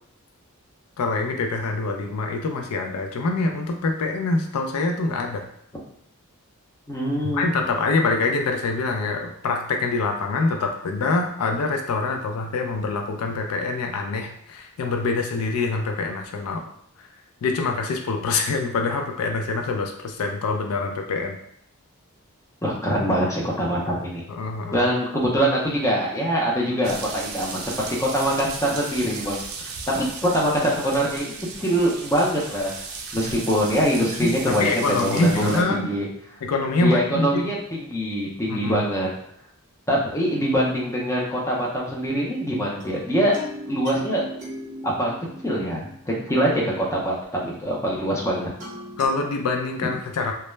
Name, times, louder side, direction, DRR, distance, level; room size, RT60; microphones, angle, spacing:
voice 1, 1.0-5.5 7.2-16.6 17.4-21.4 24.3-24.9 34.2-35.9 36.4-37.5 38.5-38.8 49.0-50.3, left 3 dB, 85° left, 3 dB, 0.4 m, -25 dB
voice 2, 6.9-7.5 22.6-24.2 24.7-29.4 29.9-31.3 31.6-32.7 33.1-36.0 36.8-39.1 39.9-43.4 43.7-44.2 44.8-45.1 45.4-48.5, equal, 15° left, -4 dB, 0.5 m, -23 dB
sound 1, 26.8-35.6, right 4 dB, 65° right, 0.4 m, -36 dB
sound 2, 42.8-46.8 48.6-49.1, right 1 dB, 35° right, 0.7 m, -38 dB
2.3 x 2.1 x 3.1 m, 0.68 s
head